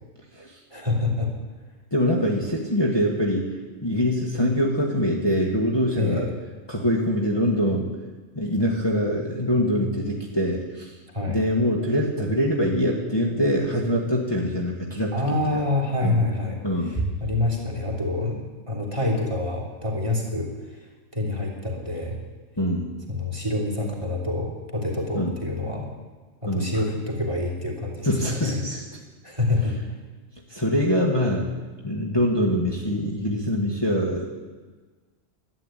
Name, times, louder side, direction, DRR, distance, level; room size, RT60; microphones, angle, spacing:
voice 1, 0.7-1.3 6.0-6.3 11.1-11.4 15.1-18.4 18.7-20.8 21.1-22.2 23.1-25.9 26.4-28.6 29.2-29.8, left 2 dB, 25° right, 0 dB, 3.1 m, -27 dB
voice 2, 1.9-3.5 3.8-6.3 6.7-7.9 8.4-10.9 11.3-15.1 15.5-15.6 16.0-16.2 16.6-17.1 22.6-22.9 25.1-25.3 26.5-26.8 28.0-29.0 30.5-31.5 31.8-34.2, equal, 20° left, -3 dB, 1.7 m, -24 dB
12.5 x 9.9 x 9.0 m, 1.4 s
omnidirectional pair, 1.4 m